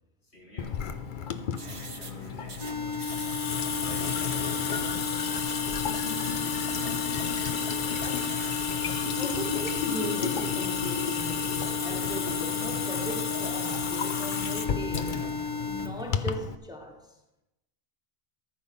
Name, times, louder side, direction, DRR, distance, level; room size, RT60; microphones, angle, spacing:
voice 1, 0.2-0.8 1.6-5.3 6.4-8.2, equal, 85° left, 3.8 m, -49 dB
Water tap faucet / Sink (filling or washing) / Drip, 0.6-16.6, left 7 dB, 55° left, 0.8 m, -32 dB
sound 1, 1.6-8.6, right 3 dB, 30° right, 1.0 m, -45 dB
sound 2, 2.6-15.9, left 4 dB, 25° left, 0.8 m, -34 dB
voice 2, 9.2-15.3 15.7-17.2, right 1 dB, 5° right, 1.1 m, -38 dB
14.0 x 5.5 x 6.8 m
omnidirectional pair, 1.1 m